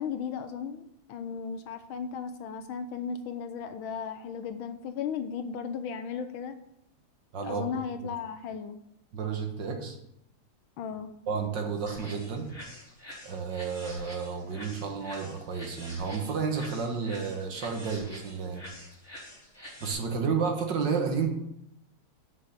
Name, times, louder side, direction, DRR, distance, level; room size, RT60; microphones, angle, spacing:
voice 1, 0.0-6.5 7.4-8.8 10.8-11.1, left 6 dB, 80° left, 9 dB, 1.5 m, -35 dB
voice 2, 7.3-7.6 9.1-10.0 11.3-12.5 13.2-18.6 19.8-21.3, right 5 dB, 60° right, 3 dB, 2.0 m, -31 dB
sound 1, 11.9-19.9, equal, 30° left, 4.6 m, -47 dB
7.9 x 6.3 x 6.6 m, 0.78 s
omnidirectional pair, 2.3 m